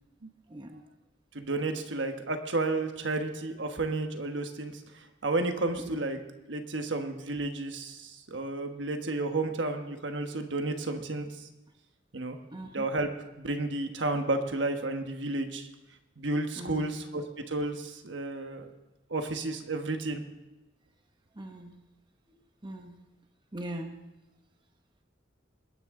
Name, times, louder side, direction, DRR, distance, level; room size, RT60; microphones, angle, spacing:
voice 1, 0.5-0.8 5.8-6.0 12.5-12.9 16.6-17.0 21.3-21.8 22.6-23.0 23.5-24.0, right 1 dB, 25° right, 4 dB, 0.9 m, -40 dB
voice 2, 1.3-4.8 5.2-6.2 6.5-11.5 12.1-12.4 12.7-13.1 13.4-15.7 16.2-18.7 19.1-20.2, right 2 dB, 65° right, 6 dB, 1.3 m, -32 dB
21.0 x 10.0 x 3.8 m, 1.0 s
head